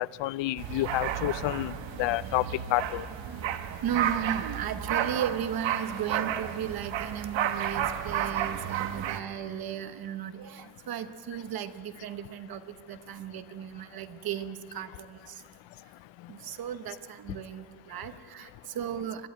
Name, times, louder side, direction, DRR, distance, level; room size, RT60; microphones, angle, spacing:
voice 1, 0.0-2.5 2.7-3.1, left 17 dB, 65° left, 18 dB, 0.6 m, -29 dB
sound 1, 0.6-9.2, right 10 dB, 65° right, 1.2 m, -32 dB
voice 2, 3.2-15.4 16.3-19.3, right 9 dB, 45° right, 10 dB, 1.0 m, -36 dB
21.5 x 13.0 x 9.3 m, 2.3 s
cardioid pair, 155°, 49 cm